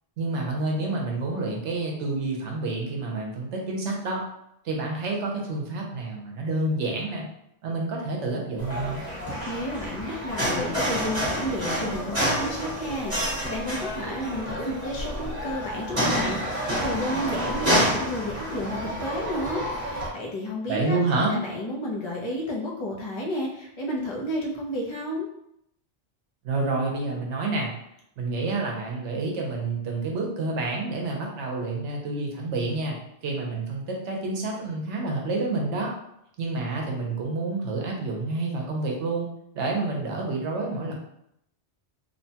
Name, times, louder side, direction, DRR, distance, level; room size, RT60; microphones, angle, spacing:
voice 1, 0.2-4.2 4.6-7.3 7.6-9.0 20.7-21.4 26.4-27.7 28.2-33.0 33.2-35.9 36.4-39.3 39.5-40.9, right 3 dB, 80° right, 0 dB, 1.0 m, -28 dB
sound 1, 8.6-20.1, equal, 30° right, 1.1 m, -28 dB
voice 2, 9.5-21.0 21.3-25.3, left 1 dB, 35° left, -2 dB, 0.5 m, -32 dB
2.9 x 2.1 x 2.7 m, 0.76 s
omnidirectional pair, 1.2 m